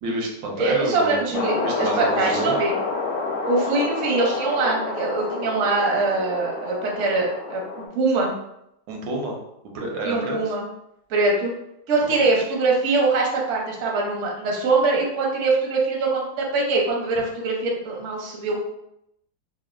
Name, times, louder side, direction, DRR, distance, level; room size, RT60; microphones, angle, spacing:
voice 1, 0.0-2.6 8.9-9.4 9.7-10.5 12.0-12.2, right 2 dB, 80° right, 0 dB, 1.3 m, -29 dB
voice 2, 0.6-2.7 3.5-8.3 10.0-10.7 11.1-11.5 11.9-18.6, right 3 dB, 60° right, -2 dB, 0.8 m, -23 dB
sound 1, 1.3-7.9, left 3 dB, 80° left, 1.2 m, -28 dB
3.4 x 2.2 x 2.3 m, 0.79 s
omnidirectional pair, 2.0 m